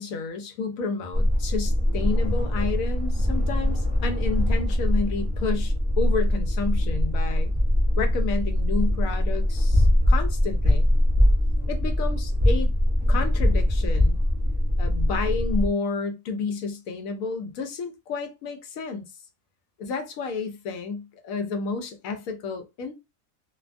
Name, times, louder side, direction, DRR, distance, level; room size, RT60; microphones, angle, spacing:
voice 1, 0.0-7.5 8.0-10.9 11.7-12.7 13.1-14.2 14.8-19.0 19.8-22.9, left 4 dB, 75° left, 1.0 m, -31 dB
sound 1, 1.1-15.7, left 1 dB, 25° right, 0.3 m, -22 dB
2.6 x 2.2 x 2.4 m
omnidirectional pair, 1.5 m